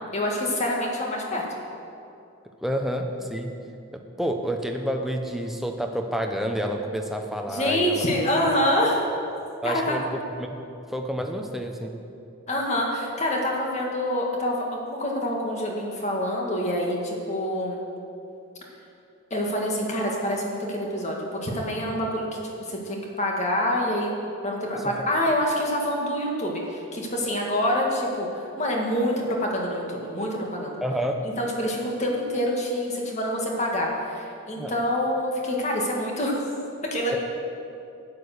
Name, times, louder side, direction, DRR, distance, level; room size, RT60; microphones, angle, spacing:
voice 1, 0.1-1.4 7.5-9.1 9.6-10.0 12.5-17.8 19.3-22.3 22.7-24.1 24.4-30.8 31.2-36.3 36.8-37.2, left 1 dB, 30° left, -1 dB, 1.8 m, -26 dB
voice 2, 2.6-3.5 3.9-8.1 9.6-10.6 10.9-11.9 24.7-24.9 30.8-31.2 34.5-34.7 37.1-37.2, equal, ahead, 3 dB, 0.8 m, -29 dB
11.5 x 10.0 x 6.7 m, 2.7 s
head